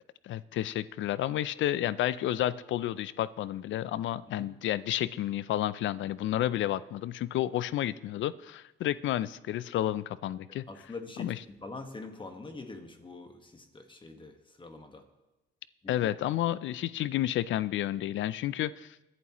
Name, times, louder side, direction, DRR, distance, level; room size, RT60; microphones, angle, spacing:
voice 1, 0.2-10.9 11.2-11.4 15.9-19.0, left 13 dB, 75° left, 18 dB, 0.5 m, -31 dB
voice 2, 10.7-15.0 15.8-16.0, left 3 dB, 25° left, 6 dB, 1.5 m, -44 dB
21.5 x 11.0 x 3.0 m, 1.0 s
cardioid pair, 90°, 20 cm